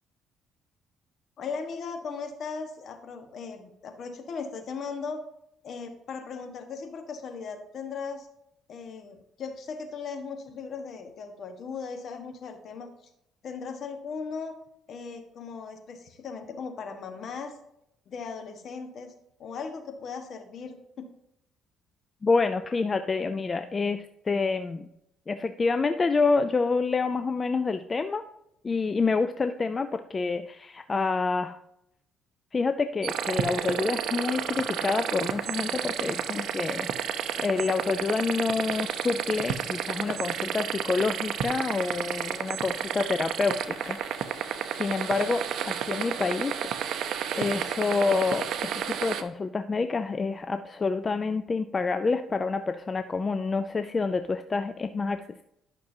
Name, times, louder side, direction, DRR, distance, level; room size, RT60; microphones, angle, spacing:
voice 1, 1.4-5.2 5.6-8.3 8.7-13.1 13.4-14.6 14.9-17.6 18.1-19.1 19.4-21.1, left 5 dB, 55° left, 6 dB, 1.3 m, -38 dB
voice 2, 22.2-24.9 25.3-28.2 28.6-31.6 32.5-46.6 47.4-55.4, left 4 dB, 30° left, 9 dB, 0.4 m, -28 dB
sound 1, 33.0-49.2, right 8 dB, 65° right, 0.6 m, -31 dB
11.5 x 6.1 x 2.7 m, 0.80 s
cardioid pair, 100°, 0 cm